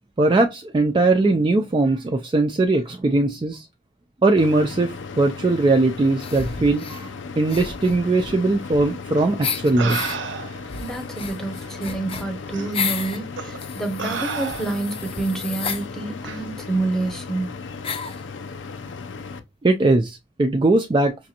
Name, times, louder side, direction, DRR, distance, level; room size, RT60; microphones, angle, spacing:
voice 1, 0.2-3.7 4.2-10.0 19.6-21.2, right 2 dB, 25° right, 0.3 m, -20 dB
sound 1, 4.4-19.4, left 4 dB, 80° left, 0.5 m, -36 dB
sound 2, 6.2-7.0 7.5-9.1 9.4-10.2 10.7-13.2 13.6-15.8 16.7-16.8 17.0-17.1 17.8-18.2, left 6 dB, 30° left, 0.5 m, -32 dB
sound 3, 9.1-9.2 9.8-10.7 11.6-11.7 12.5-12.7 13.4-13.6 14.0-15.0 16.2-16.4, right 5 dB, 75° right, 0.6 m, -31 dB
voice 2, 10.8-17.5, right 2 dB, 5° left, 0.8 m, -28 dB
5.9 x 2.5 x 2.8 m
head